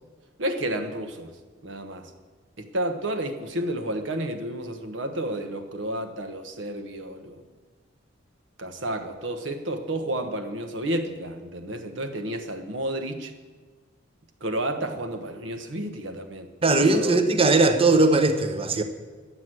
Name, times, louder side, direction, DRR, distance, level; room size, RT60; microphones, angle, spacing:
voice 1, 0.4-1.3 1.6-2.1 2.6-7.4 8.6-13.3 14.4-17.2, right 1 dB, 65° right, 7 dB, 1.2 m, -31 dB
voice 2, 16.6-18.8, right 3 dB, 30° right, 8 dB, 0.9 m, -19 dB
11.5 x 8.1 x 7.6 m, 1.4 s
head